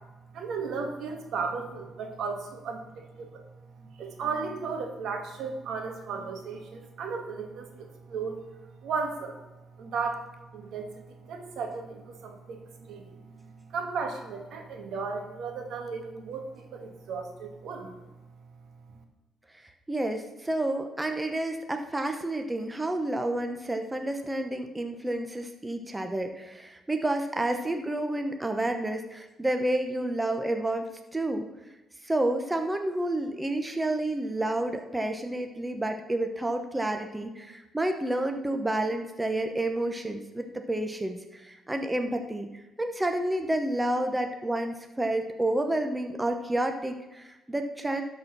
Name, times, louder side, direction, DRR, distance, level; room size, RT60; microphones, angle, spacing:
voice 1, 0.3-3.4 3.8-8.4 8.8-9.4 9.8-10.2 10.5-18.0, right 5 dB, 75° right, 4 dB, 1.7 m, -35 dB
voice 2, 19.9-31.5 32.0-42.5 42.8-48.0, right 1 dB, 15° right, 5 dB, 0.9 m, -30 dB
12.0 x 4.4 x 6.0 m, 1.1 s
cardioid pair, 90°, 0 cm